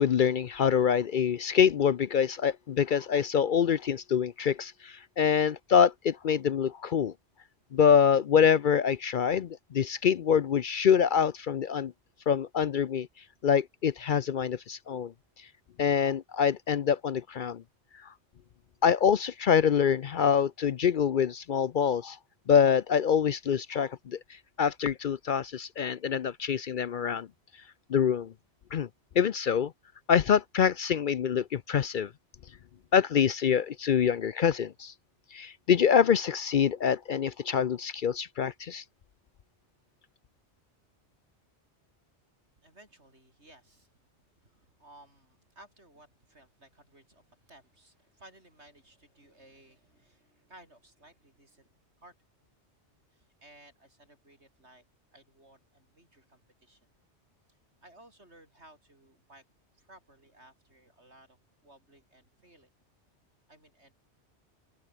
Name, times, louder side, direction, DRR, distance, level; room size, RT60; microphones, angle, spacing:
voice 1, 0.0-7.1 7.7-11.9 12.3-13.1 13.4-15.5 15.8-17.6 18.8-22.2 22.5-27.3 27.9-28.3 28.7-28.9 29.2-29.7 30.1-32.1 32.9-34.9 35.3-38.8, left 7 dB, 55° left, 0.6 m, -25 dB
voice 2, 42.6-52.1 53.1-54.8 55.1-56.9 57.5-59.4 59.7-62.7 63.5-64.0, right 1 dB, 70° right, 7.9 m, -58 dB
open air
omnidirectional pair, 1.2 m